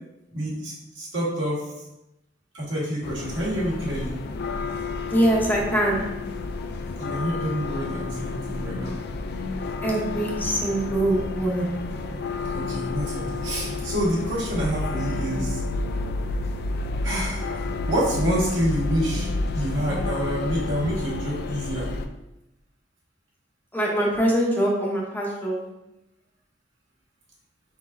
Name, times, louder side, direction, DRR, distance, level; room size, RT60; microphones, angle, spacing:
voice 1, 0.3-1.6 2.5-4.2 7.0-9.0 12.5-15.6 17.0-17.6 17.9-19.3 19.5-21.9, equal, 70° right, -6 dB, 1.6 m, -27 dB
sound 1, 3.0-22.1, left 3 dB, 55° left, 0.4 m, -30 dB
voice 2, 5.1-6.0 9.8-11.7 23.7-25.7, right 1 dB, 10° left, -3 dB, 0.7 m, -23 dB
4.8 x 3.9 x 2.6 m, 0.91 s
head